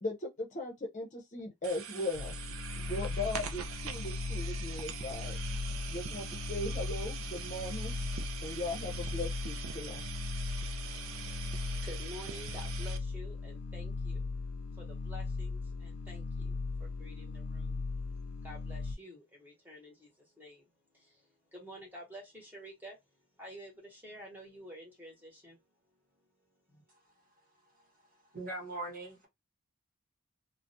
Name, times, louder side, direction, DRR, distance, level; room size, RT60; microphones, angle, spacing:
voice 1, 0.0-2.4 2.8-5.4 5.9-8.0 8.4-10.0, left 2 dB, 35° left, 0.6 m, -38 dB
sound 1, 1.6-13.0, right 7 dB, 70° right, 0.4 m, -43 dB
sound 2, 2.1-18.9, left 3 dB, 75° left, 0.4 m, -38 dB
voice 2, 10.8-14.3 14.7-17.9 18.4-20.7 20.9-23.0 23.4-25.6 26.7-26.8, equal, 10° right, 0.9 m, -50 dB
voice 3, 28.3-29.3, right 2 dB, 40° right, 1.0 m, -40 dB
2.4 x 2.1 x 2.6 m
head